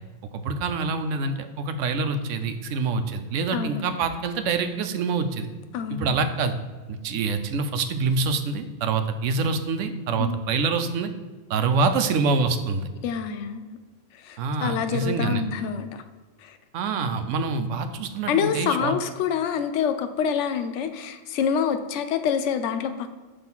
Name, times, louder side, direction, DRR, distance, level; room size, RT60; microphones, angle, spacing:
voice 1, 0.3-5.5 5.9-6.5 7.0-11.1 11.5-12.9 14.4-15.4 16.7-18.9, right 4 dB, 75° right, 8 dB, 0.9 m, -26 dB
voice 2, 3.5-3.8 5.7-6.2 10.2-10.4 13.0-13.8 14.2-16.0 16.4-16.6 18.3-23.1, left 7 dB, 70° left, 9 dB, 0.9 m, -27 dB
6.0 x 3.3 x 5.5 m, 1.3 s
omnidirectional pair, 1.3 m